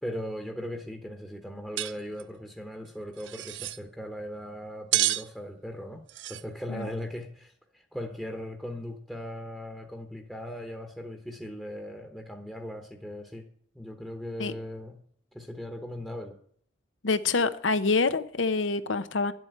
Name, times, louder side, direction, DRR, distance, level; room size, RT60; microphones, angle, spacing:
voice 1, 0.0-13.5 13.7-15.0 15.3-16.4, equal, 5° left, 1.0 m, -38 dB
sound 1, 1.8-1.9 2.2-2.3 3.2-3.8 4.9-5.3 6.1-6.4, right 15 dB, 75° right, 0.6 m, -29 dB
voice 2, 17.0-19.3, left 4 dB, 85° left, 0.9 m, -26 dB
11.0 x 7.8 x 9.2 m
head